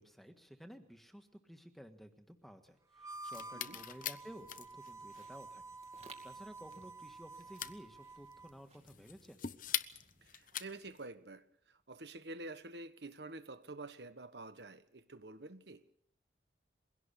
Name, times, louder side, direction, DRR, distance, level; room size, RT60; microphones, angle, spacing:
voice 1, 0.0-5.6 6.2-9.4, equal, ahead, 1.6 m, -54 dB
Harmonica, 2.9-8.6, right 3 dB, 15° right, 1.1 m, -50 dB
sound 1, 3.1-11.1, left 10 dB, 50° left, 0.9 m, -44 dB
sound 2, 3.6-10.9, right 4 dB, 35° right, 2.4 m, -63 dB
voice 2, 10.2-15.8, right 2 dB, 65° right, 1.3 m, -49 dB
22.5 x 17.0 x 6.8 m
head